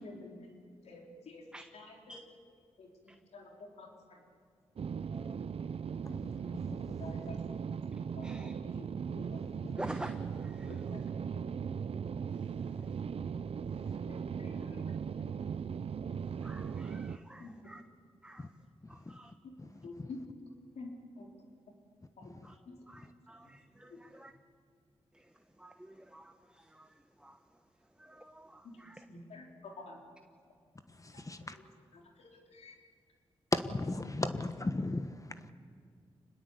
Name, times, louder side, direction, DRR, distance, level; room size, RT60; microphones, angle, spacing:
voice 1, 0.0-0.5 0.8-2.2 2.8-4.2 4.9-5.1 7.0-7.4 8.2-8.9 9.1-9.4 10.7-11.0 14.1-14.8 17.4-17.5 19.4-19.5 19.8-20.2 20.7-20.9 21.2-21.3 22.2-22.3 22.7-22.8 23.4-23.5 28.6-28.7 29.1-30.0 31.4-31.7 31.9-32.8, left 3 dB, 80° left, 0 dB, 4.0 m, -50 dB
sound 1, 4.8-17.2, right 6 dB, 60° right, 0.7 m, -38 dB
voice 2, 9.8-10.1 16.4-17.8 18.2-18.4 19.1-19.3 22.9-23.0 23.3-23.4 23.8-23.9 24.2-24.3 25.6-25.7 26.1-26.3 27.2-27.3 28.2-28.5, right 1 dB, 10° right, 7 dB, 1.3 m, -45 dB
voice 3, 33.5-35.1, left 2 dB, 30° left, 9 dB, 1.3 m, -33 dB
26.5 x 20.5 x 8.2 m, 2.1 s
supercardioid pair, 45°, 11 cm